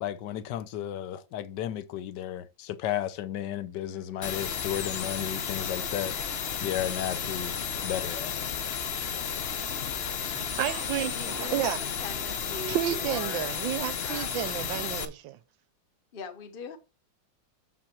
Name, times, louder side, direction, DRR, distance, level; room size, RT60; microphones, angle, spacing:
voice 1, 0.0-6.3 6.6-8.3, left 11 dB, 70° left, 1.2 m, -34 dB
sound 1, 4.2-15.1, left 7 dB, 55° left, 0.7 m, -33 dB
voice 2, 10.3-11.8 12.7-15.4, right 12 dB, 85° right, 1.4 m, -31 dB
voice 3, 11.0-13.5 14.0-14.4 16.1-16.8, left 5 dB, 35° left, 1.1 m, -41 dB
7.3 x 6.0 x 4.4 m
omnidirectional pair, 2.0 m